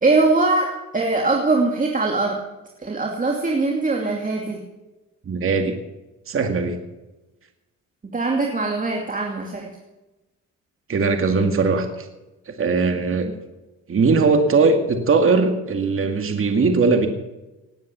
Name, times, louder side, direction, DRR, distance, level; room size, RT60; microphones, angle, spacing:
voice 1, 0.0-2.4 2.8-4.6 8.1-9.7, right 3 dB, 25° right, 1 dB, 2.5 m, -21 dB
voice 2, 5.3-5.8 6.3-6.8 10.9-12.1 12.5-13.3 13.9-17.1, right 4 dB, 45° right, 6 dB, 2.2 m, -19 dB
18.5 x 9.4 x 6.9 m, 1.1 s
cardioid pair, 90°, 30 cm